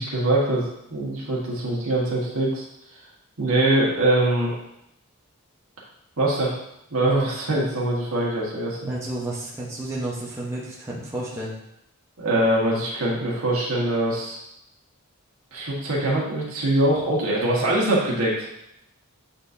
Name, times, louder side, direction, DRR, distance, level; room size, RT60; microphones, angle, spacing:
voice 1, 0.0-2.6 3.4-4.5 6.2-6.5 6.9-8.9 12.2-14.4 15.5-18.5, right 1 dB, 70° right, -5 dB, 1.6 m, -23 dB
voice 2, 8.9-11.5, right 1 dB, 15° right, -7 dB, 1.1 m, -31 dB
7.9 x 4.3 x 2.8 m, 0.81 s
head